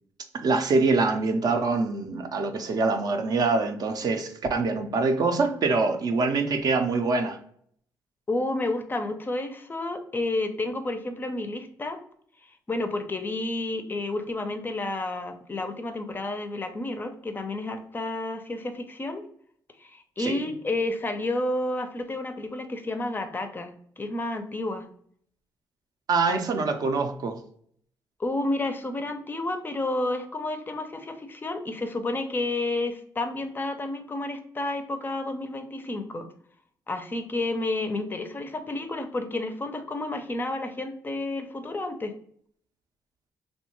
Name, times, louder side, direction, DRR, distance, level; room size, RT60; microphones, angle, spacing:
voice 1, 0.3-7.4 20.2-20.5 26.1-27.4, right 3 dB, 55° right, 0.5 m, -24 dB
voice 2, 8.3-12.0 12.7-19.2 19.8-24.9 26.3-26.4 28.2-36.3 36.9-42.1, left 2 dB, 25° left, 0.4 m, -30 dB
3.1 x 2.1 x 3.0 m
cardioid pair, 95°, 8 cm